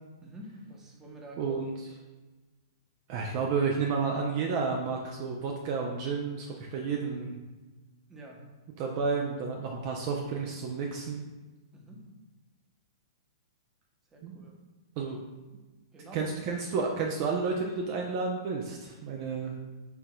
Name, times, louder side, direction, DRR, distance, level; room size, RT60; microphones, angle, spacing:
voice 1, 0.2-1.6 8.1-8.5 9.8-10.0 11.7-12.0 14.1-14.5 15.9-16.3, right 1 dB, 15° right, 0 dB, 0.8 m, -47 dB
voice 2, 1.4-1.7 3.1-7.4 8.8-11.2 14.2-14.5 15.0-15.2 16.1-19.5, right 5 dB, 45° right, 0 dB, 0.5 m, -31 dB
4.6 x 3.7 x 2.2 m, 1.2 s
hypercardioid pair, 115°, 2 cm